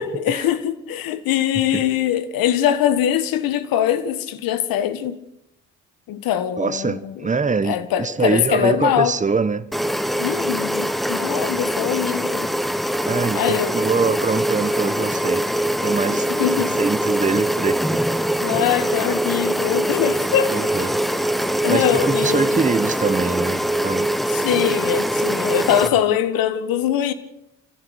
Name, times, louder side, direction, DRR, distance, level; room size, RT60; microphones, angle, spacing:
voice 1, 0.0-5.2 6.1-7.2 7.6-9.2 10.2-12.5 13.4-13.8 16.3-16.7 18.4-20.7 21.6-22.6 24.3-27.1, left 10 dB, 75° left, 1.8 m, -22 dB
voice 2, 6.6-9.7 13.1-18.1 18.5-18.6 20.5-21.0 21.7-24.1, right 4 dB, 20° right, 1.3 m, -24 dB
sound 1, 9.7-25.9, right 1 dB, ahead, 1.4 m, -23 dB
25.5 x 15.0 x 8.1 m
hypercardioid pair, 55°, 35 cm